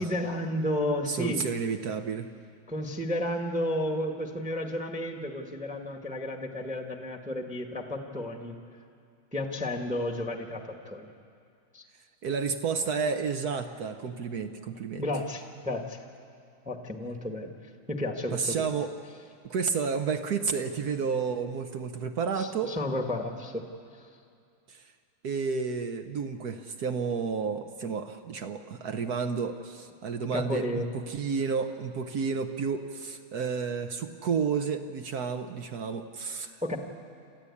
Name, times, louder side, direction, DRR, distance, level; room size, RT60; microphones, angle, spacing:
voice 1, 0.0-1.4 2.7-8.6 9.3-11.1 11.7-11.8 15.0-16.0 16.6-17.5 17.9-18.6 22.3-23.6 24.0-24.1 30.3-31.0 36.6-36.8, left 1 dB, 5° right, 4 dB, 1.1 m, -32 dB
voice 2, 1.1-2.3 12.2-15.0 18.3-18.9 19.4-22.8 24.7-24.8 25.2-36.8, right 5 dB, 60° right, 7 dB, 1.2 m, -31 dB
28.0 x 14.0 x 8.4 m, 2.3 s
omnidirectional pair, 2.2 m